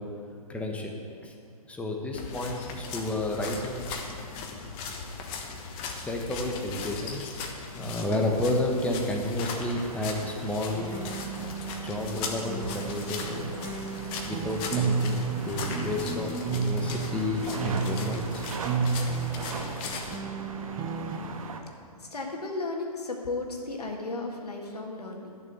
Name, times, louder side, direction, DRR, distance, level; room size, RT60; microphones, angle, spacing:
voice 1, 0.5-1.0 1.2-1.3 1.7-3.9 6.0-7.3 7.7-10.9 11.8-13.5 14.3-18.5, left 1 dB, 5° left, 1 dB, 1.2 m, -31 dB
sound 1, 2.1-20.2, left 5 dB, 25° left, 1.3 m, -39 dB
sound 2, 9.5-21.6, right 5 dB, 60° right, 1.3 m, -41 dB
sound 3, 10.7-21.2, right 4 dB, 20° right, 0.9 m, -32 dB
voice 2, 22.0-25.4, left 3 dB, 80° left, 1 dB, 1.8 m, -34 dB
12.5 x 6.9 x 7.9 m, 2.4 s
figure-of-eight pair, 130°, 20 cm